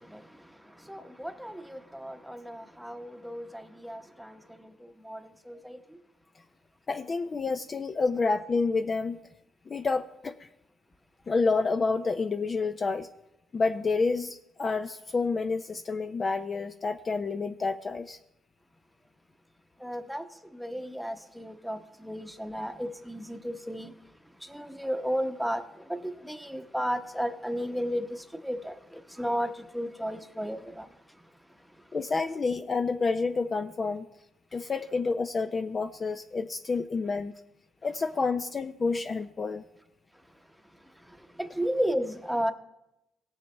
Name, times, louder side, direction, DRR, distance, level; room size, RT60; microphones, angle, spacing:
voice 1, 0.9-4.7 5.0-5.8 19.8-20.2 20.5-23.9 24.5-25.6 25.9-30.9 41.4-42.5, equal, ahead, 1.0 m, -33 dB
voice 2, 6.9-9.2 9.7-10.5 11.3-13.1 13.5-18.2 31.9-34.1 34.5-37.3 37.8-39.6, left 4 dB, 35° left, 0.5 m, -29 dB
17.5 x 7.2 x 3.3 m
cardioid pair, 90°, 0 cm